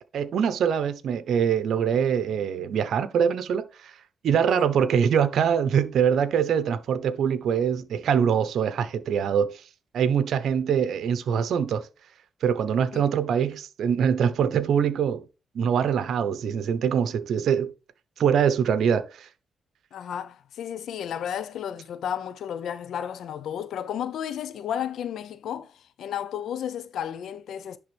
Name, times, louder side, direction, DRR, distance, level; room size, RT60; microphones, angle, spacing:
voice 1, 0.1-3.9 4.2-9.6 9.9-11.9 12.4-15.3 15.5-17.7 18.2-19.3, right 7 dB, 75° right, 0.8 m, -24 dB
voice 2, 19.9-27.8, left 9 dB, 80° left, 0.6 m, -33 dB
10.5 x 3.5 x 3.4 m
cardioid pair, 65°, 0 cm